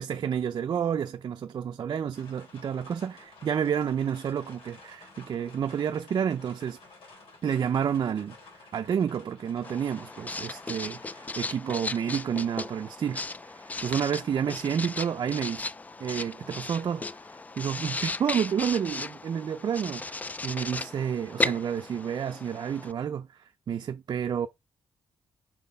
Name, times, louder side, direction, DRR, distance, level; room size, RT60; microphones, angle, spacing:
voice 1, 0.0-6.8 7.4-8.4 8.7-15.7 16.0-17.0 17.6-20.2 20.4-24.5, right 8 dB, 50° right, 0.5 m, -30 dB
sound 1, 2.1-11.4, left 3 dB, 75° left, 3.4 m, -52 dB
Writing, 9.6-22.9, left 3 dB, 15° left, 0.3 m, -36 dB
6.1 x 4.1 x 5.2 m
wide cardioid pair, 150°, 9 cm